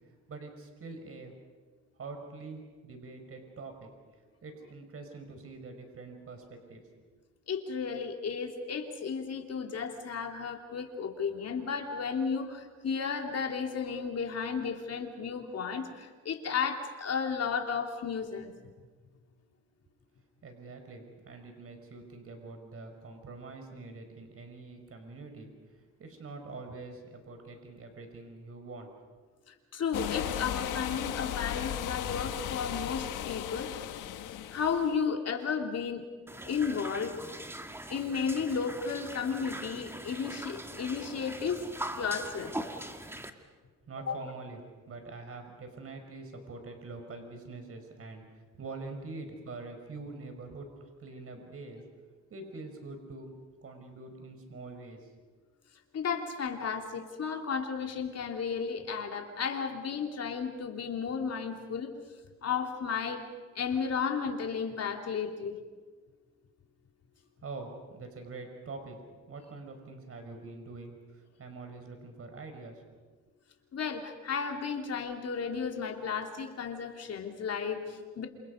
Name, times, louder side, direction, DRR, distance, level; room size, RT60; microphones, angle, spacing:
voice 1, 0.0-1.3 2.0-3.9 4.4-6.8 20.4-25.5 26.0-28.9 43.3-43.5 43.9-44.6 44.9-48.2 48.6-50.7 51.0-51.8 52.3-53.3 53.6-55.1 67.4-69.0 69.3-72.8, right 3 dB, 50° right, 5 dB, 5.2 m, -45 dB
voice 2, 7.5-18.5 29.5-33.7 34.5-36.0 36.4-37.2 37.9-41.6 42.0-42.5 44.1-44.2 55.9-61.9 62.4-63.2 63.5-65.6 73.7-78.3, left 6 dB, 55° left, 3 dB, 3.3 m, -33 dB
sound 1, 29.9-35.0, left 11 dB, 90° left, 1.6 m, -36 dB
sound 2, 36.3-43.3, right 1 dB, 10° right, 1.9 m, -41 dB
28.0 x 27.5 x 5.3 m, 1.4 s
cardioid pair, 90°, 30 cm